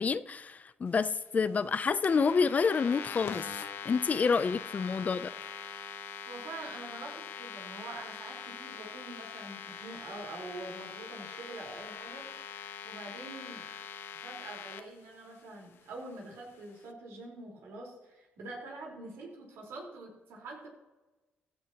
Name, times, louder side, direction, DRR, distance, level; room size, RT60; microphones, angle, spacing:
voice 1, 0.0-3.5 3.8-5.3, left 5 dB, 40° left, 0.5 m, -28 dB
sound 1, 2.0-14.8, left 8 dB, 65° left, 1.0 m, -43 dB
voice 2, 6.3-12.3 12.8-13.7 14.2-20.7, right 2 dB, 85° right, 4.4 m, -45 dB
15.0 x 12.0 x 3.0 m
cardioid pair, 85°, 4 cm